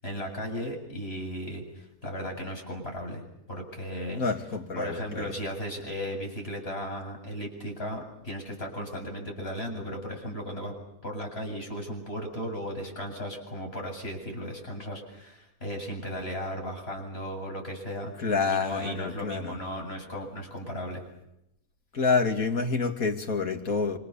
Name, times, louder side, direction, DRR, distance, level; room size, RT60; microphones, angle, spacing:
voice 1, 0.0-4.2 4.8-10.7 11.0-18.1 18.5-21.0, equal, 40° left, 8.1 m, -36 dB
voice 2, 4.2-5.3 18.2-19.5 21.9-24.0, left 4 dB, 65° left, 3.0 m, -28 dB
28.5 x 26.5 x 7.1 m
omnidirectional pair, 1.6 m